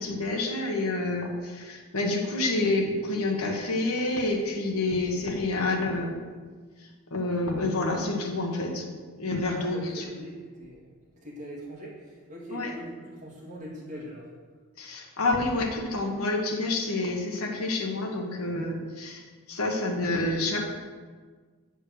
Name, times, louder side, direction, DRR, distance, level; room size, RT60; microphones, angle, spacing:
voice 1, 0.0-6.2 6.8-8.9 9.2-10.1 12.5-12.7 14.8-20.6, left 2 dB, 75° left, 0 dB, 1.3 m, -28 dB
voice 2, 9.4-10.9 11.2-14.3, equal, 35° right, -5 dB, 2.2 m, -41 dB
7.9 x 5.4 x 6.5 m, 1.5 s
head